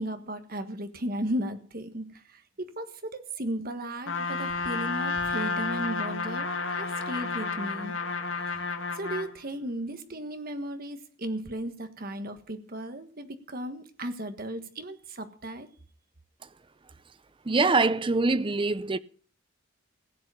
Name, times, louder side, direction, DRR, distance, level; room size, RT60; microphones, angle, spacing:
voice 1, 0.0-7.9 8.3-8.6 8.9-15.7, right 1 dB, 45° right, 1.5 m, -35 dB
Trumpet, 4.1-9.3, left 4 dB, 70° left, 1.6 m, -31 dB
voice 2, 17.5-19.0, right 3 dB, 25° right, 0.5 m, -24 dB
16.5 x 7.9 x 7.0 m
head